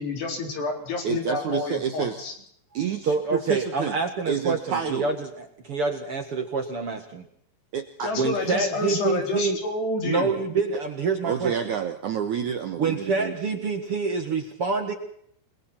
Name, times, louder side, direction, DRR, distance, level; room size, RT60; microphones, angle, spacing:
voice 1, 0.0-2.3 8.0-10.3, left 3 dB, 65° left, 3 dB, 6.0 m, -29 dB
voice 2, 1.0-2.2 2.7-4.0 4.3-5.1 7.7-8.1 11.2-13.4, right 8 dB, 75° right, 7 dB, 1.8 m, -29 dB
voice 3, 3.1-7.2 8.1-9.6 10.0-11.5 12.8-14.9, right 4 dB, 55° right, 6 dB, 1.7 m, -26 dB
28.5 x 21.5 x 4.4 m, 0.68 s
omnidirectional pair, 5.2 m